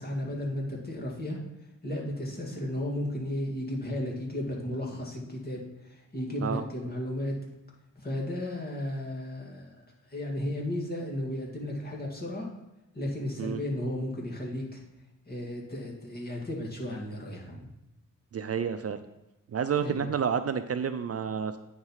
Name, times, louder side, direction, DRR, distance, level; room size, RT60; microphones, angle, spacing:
voice 1, 0.0-1.4 1.8-7.3 8.0-9.8 10.1-12.5 12.9-14.8 15.3-17.7 19.8-20.0, left 1 dB, 30° left, -1 dB, 2.2 m, -34 dB
voice 2, 18.3-19.0 19.5-21.6, right 7 dB, 45° right, 10 dB, 0.5 m, -29 dB
8.9 x 4.7 x 5.6 m, 0.97 s
wide cardioid pair, 105°, 33 cm